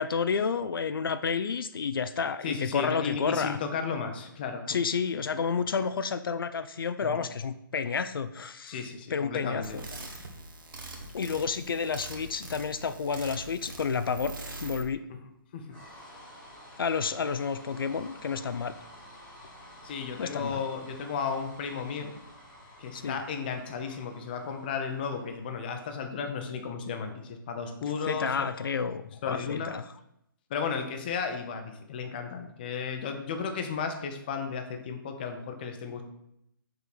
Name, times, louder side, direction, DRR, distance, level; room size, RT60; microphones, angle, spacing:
voice 1, 0.0-3.6 4.7-8.8 9.1-9.8 11.1-14.4 14.6-15.0 16.8-18.7 20.2-20.6 22.9-23.2 28.1-29.8, left 6 dB, 80° left, 11 dB, 0.5 m, -30 dB
voice 2, 2.4-4.8 7.0-7.2 8.7-9.8 15.1-15.2 15.5-15.7 19.8-22.2 22.8-28.5 29.2-29.7 30.5-36.0, left 6 dB, 25° left, 6 dB, 0.7 m, -34 dB
sound 1, 9.6-14.8, right 2 dB, 70° right, 1.5 m, -43 dB
sound 2, 15.7-26.0, left 1 dB, 5° left, 1.6 m, -51 dB
5.8 x 3.8 x 6.0 m, 0.80 s
hypercardioid pair, 170°, 12 cm